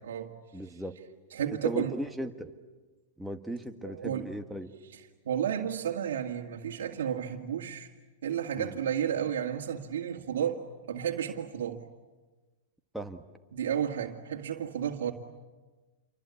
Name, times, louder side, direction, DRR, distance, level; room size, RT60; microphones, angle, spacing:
voice 1, 0.5-1.0 1.6-2.5 3.2-4.7 8.6-8.7 12.9-13.2, equal, ahead, 4 dB, 1.5 m, -37 dB
voice 2, 1.3-1.9 3.8-4.3 5.3-7.9 8.2-10.6 10.9-11.8 13.5-15.1, right 9 dB, 85° right, 1 dB, 2.0 m, -32 dB
27.5 x 24.0 x 8.5 m, 1.3 s
hypercardioid pair, 140°, 0 cm